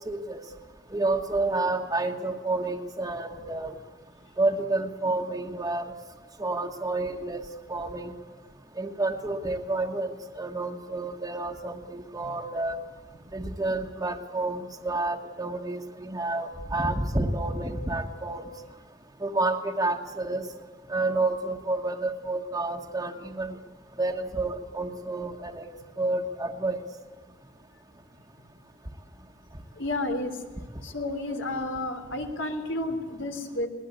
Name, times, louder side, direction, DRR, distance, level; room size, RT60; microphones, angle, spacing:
voice 1, 0.1-0.4 0.9-3.7 4.4-5.9 6.4-8.1 8.8-12.8 13.3-18.4 19.2-20.5 20.9-23.6 24.0-25.6 26.0-26.8, right 2 dB, 20° right, 0 dB, 1.3 m, -29 dB
voice 2, 29.8-30.3 30.8-33.7, left 2 dB, 85° left, 4 dB, 3.6 m, -31 dB
21.0 x 19.5 x 8.2 m, 1.4 s
head